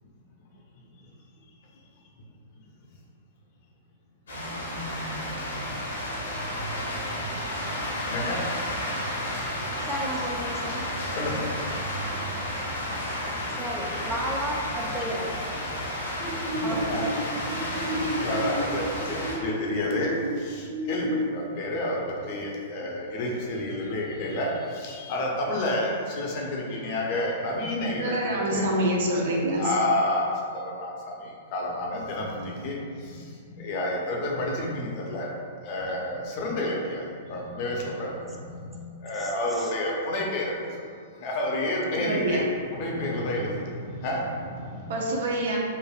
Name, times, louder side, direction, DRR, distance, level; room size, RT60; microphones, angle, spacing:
sound 1, 4.3-19.4, equal, 80° left, 0.8 m, -32 dB
voice 1, 8.1-8.4 11.2-11.5 16.9-17.0 18.2-20.1 20.4-28.6 29.6-30.3 30.6-32.8 33.0-33.2 33.5-35.3 35.6-40.5 41.2-42.4 42.7-44.9, left 1 dB, 50° left, -2 dB, 0.6 m, -30 dB
voice 2, 9.8-11.0 13.6-15.3 16.6-17.7 39.1-39.7, right 1 dB, 10° right, -2 dB, 0.4 m, -34 dB
sound 2, 16.2-21.2, right 1 dB, 35° right, 1.4 m, -32 dB
voice 3, 28.0-29.7 42.0-42.4 44.9-45.6, right 1 dB, 65° right, -2 dB, 0.6 m, -26 dB
3.2 x 2.5 x 2.3 m, 2.2 s
hypercardioid pair, 115°, 0 cm